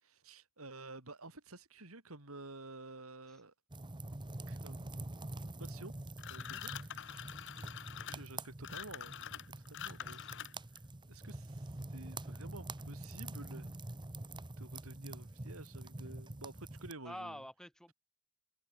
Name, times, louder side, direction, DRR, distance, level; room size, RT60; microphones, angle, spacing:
voice 1, 0.0-3.5 4.5-5.2 5.6-5.9 6.3-7.2 8.0-10.2 11.1-13.8 14.6-17.4, right 2 dB, 70° right, 4.0 m, -51 dB
sound 1, 3.7-16.9, right 2 dB, 20° right, 0.9 m, -46 dB
sound 2, 6.2-10.8, left 10 dB, 55° left, 1.0 m, -46 dB
voice 2, 10.0-10.3 17.0-17.9, equal, 5° left, 5.9 m, -48 dB
head